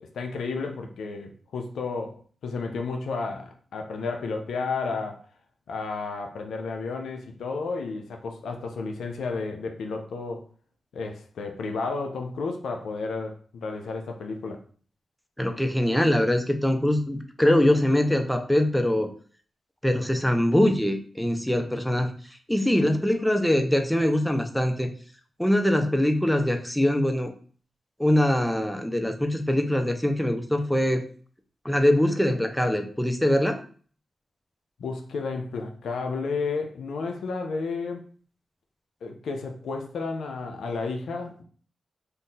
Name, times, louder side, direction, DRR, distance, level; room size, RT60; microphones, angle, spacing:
voice 1, 0.0-5.2 5.7-10.5 10.9-14.6 34.8-38.0 39.0-41.4, left 4 dB, 85° left, 0.4 m, -32 dB
voice 2, 15.4-19.1 19.8-22.1 22.5-24.9 25.4-27.3 28.0-31.0 31.6-33.6, left 1 dB, 5° left, 0.6 m, -23 dB
2.6 x 2.5 x 3.7 m
supercardioid pair, 45°, 0 cm